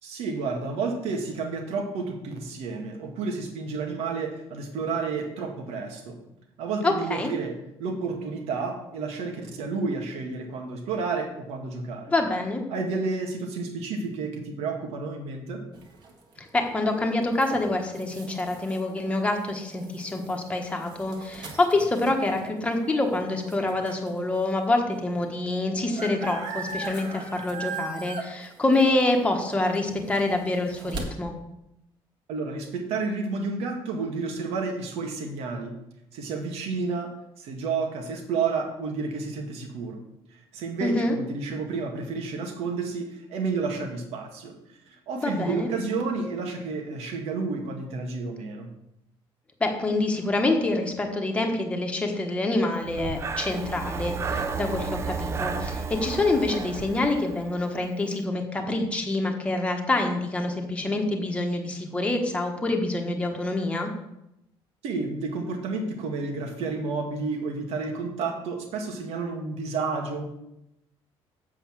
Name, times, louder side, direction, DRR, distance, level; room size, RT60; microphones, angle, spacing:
voice 1, 0.0-6.2 6.6-12.1 12.7-15.6 32.3-35.7 36.1-37.1 37.4-40.0 40.5-44.5 44.9-48.7 64.8-70.2, right 4 dB, 85° right, 3 dB, 2.0 m, -31 dB
voice 2, 6.8-7.3 12.1-12.6 16.4-31.3 40.8-41.1 45.1-45.7 49.6-63.9, left 2 dB, 10° left, 2 dB, 1.3 m, -26 dB
sound 1, 15.7-24.2 24.8-24.9 25.0-31.0, right 3 dB, 50° right, 1.8 m, -40 dB
Breathing, 52.8-57.8, right 5 dB, 25° right, 0.6 m, -32 dB
7.9 x 5.7 x 7.4 m, 0.85 s
cardioid pair, 165°, 10 cm